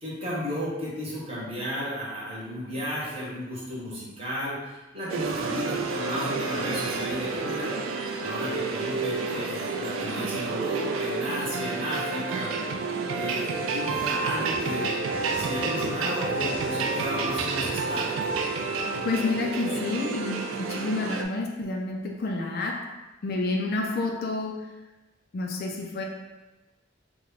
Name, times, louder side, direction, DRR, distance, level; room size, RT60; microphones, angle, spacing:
voice 1, 0.0-7.9 8.2-12.5 13.1-14.9 15.3-18.0, equal, 30° right, -6 dB, 1.0 m, -33 dB
sound 1, 5.1-21.2, right 4 dB, 80° right, 0.3 m, -30 dB
sound 2, 14.0-16.0 16.3-19.0, equal, 5° left, 0.7 m, -44 dB
voice 2, 19.0-22.8 23.2-24.6 25.3-26.0, left 3 dB, 50° left, 1 dB, 0.4 m, -29 dB
3.1 x 2.2 x 3.8 m, 1.1 s
head